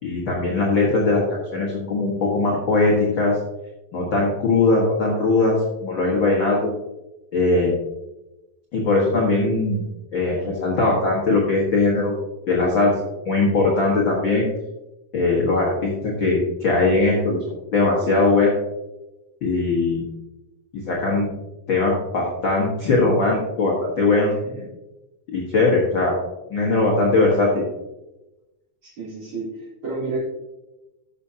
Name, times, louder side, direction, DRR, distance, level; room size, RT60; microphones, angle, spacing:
voice 1, 0.0-3.4 3.9-6.7 7.3-7.8 8.7-9.8 10.1-12.1 12.5-13.0 13.2-14.5 15.1-17.4 17.7-18.6 19.4-20.1 20.7-21.3 21.7-24.3 25.3-26.2 26.5-27.6, left 3 dB, 50° left, -3 dB, 1.6 m, -20 dB
voice 2, 28.8-30.3, right 2 dB, 35° right, -8 dB, 4.3 m, -30 dB
12.5 x 6.9 x 2.8 m, 1.0 s
omnidirectional pair, 4.0 m